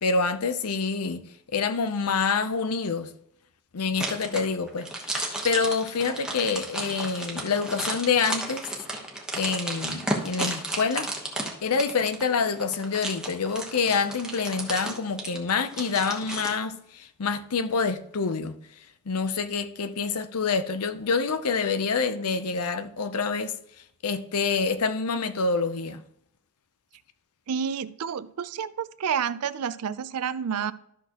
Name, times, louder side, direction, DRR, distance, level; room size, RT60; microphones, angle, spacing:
voice 1, 0.0-1.2 1.5-3.1 3.7-5.1 5.4-8.7 9.4-11.1 11.6-18.6 19.1-23.5 24.0-26.0, left 5 dB, 80° left, 0.7 m, -27 dB
sound 1, 4.0-16.5, right 1 dB, 5° right, 1.1 m, -33 dB
voice 2, 27.5-30.7, right 7 dB, 90° right, 0.5 m, -29 dB
12.5 x 6.2 x 3.0 m
head